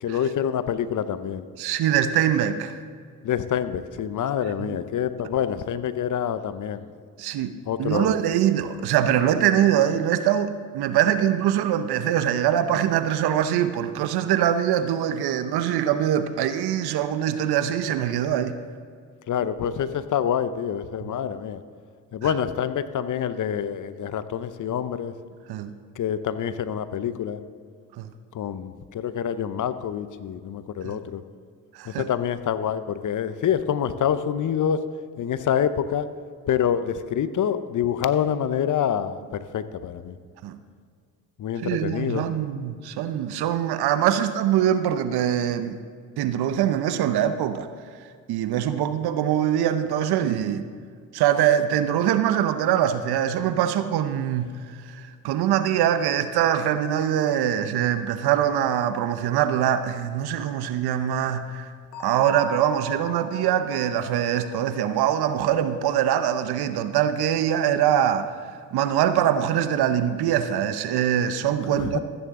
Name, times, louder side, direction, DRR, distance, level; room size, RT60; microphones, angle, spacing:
voice 1, 0.0-1.4 3.2-6.9 7.7-8.2 19.3-21.6 22.1-25.1 26.0-27.4 28.3-31.2 32.0-34.8 35.2-36.1 36.5-39.2 39.5-40.2 41.4-42.2 71.8-72.0, left 9 dB, 50° left, 13 dB, 0.7 m, -26 dB
voice 2, 1.6-2.8 4.6-4.8 7.2-18.5 21.0-21.1 22.2-22.3 25.5-25.7 28.0-28.1 30.8-31.0 31.7-32.1 40.4-40.6 41.6-45.8 46.2-47.7 48.3-50.6 51.1-54.6 54.9-61.7 62.0-68.3 68.7-72.0, right 10 dB, 65° right, 11 dB, 0.8 m, -23 dB
Bell, 61.9-65.6, right 2 dB, 85° left, 2.4 m, -38 dB
14.0 x 9.6 x 3.7 m, 2.1 s
supercardioid pair, 60°, 40 cm